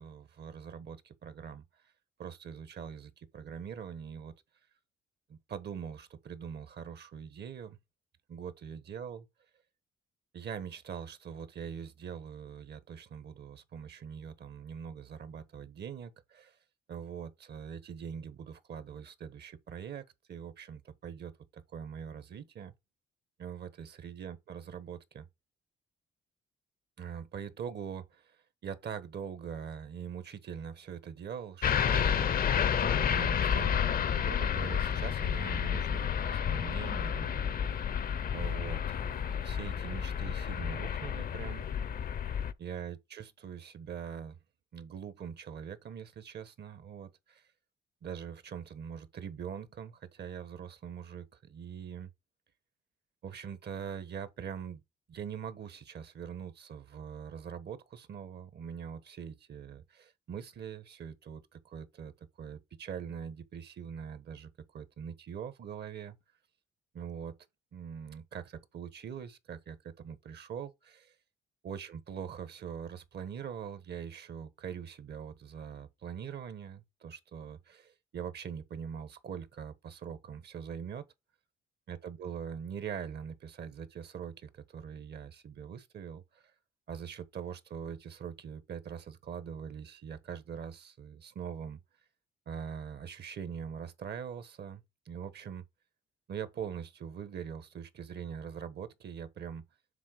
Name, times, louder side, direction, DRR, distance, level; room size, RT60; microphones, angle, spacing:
voice 1, 0.0-1.6 2.2-4.3 5.3-7.8 8.3-9.3 10.3-16.6 16.9-22.7 23.4-25.3 27.0-32.5 32.7-37.5 38.3-41.7 42.6-44.4 44.7-47.5 48.0-52.1 53.2-54.8 55.1-66.2 66.9-67.4 67.7-71.1 71.6-81.0 81.9-86.4 86.9-91.8 92.5-95.6 96.3-99.6, right 7 dB, 55° right, 1.2 m, -43 dB
sound 1, 31.6-42.5, left 8 dB, 45° left, 0.6 m, -30 dB
7.4 x 3.4 x 6.2 m
cardioid pair, 90°, 20 cm